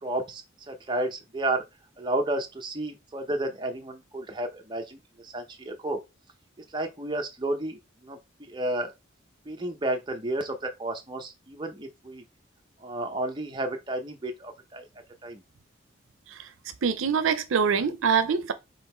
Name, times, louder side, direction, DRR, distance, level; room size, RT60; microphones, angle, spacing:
voice 1, 0.0-1.6 2.0-6.0 6.7-8.9 9.5-12.2 12.8-14.8 15.2-15.4, right 1 dB, 25° right, 0.7 m, -32 dB
voice 2, 16.8-18.5, right 6 dB, 85° right, 0.5 m, -24 dB
3.8 x 2.9 x 4.4 m
head